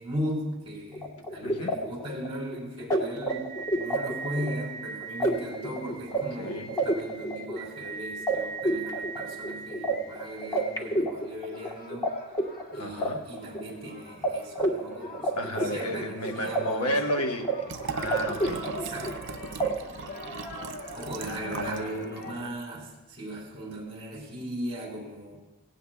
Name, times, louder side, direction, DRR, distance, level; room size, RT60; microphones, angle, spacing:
voice 1, 0.0-12.1 12.7-17.0 18.6-19.5 20.9-25.4, equal, 25° right, -2 dB, 4.1 m, -38 dB
sound 1, 0.9-12.1 12.3-13.9 14.2-14.3 14.6-16.6 16.9-17.5 17.8-19.2 19.6-19.7, right 2 dB, 15° left, 1.2 m, -30 dB
voice 2, 1.4-1.8 6.1-6.7 12.8-13.2 15.4-18.6 21.2-22.1, equal, 85° left, 4 dB, 1.1 m, -33 dB
sound 2, 11.1-22.5, left 2 dB, 40° left, 1.2 m, -44 dB
Liquid, 17.7-21.9 22.2-22.3, right 5 dB, 55° right, 0.5 m, -39 dB
17.0 x 16.5 x 2.3 m, 1.1 s
head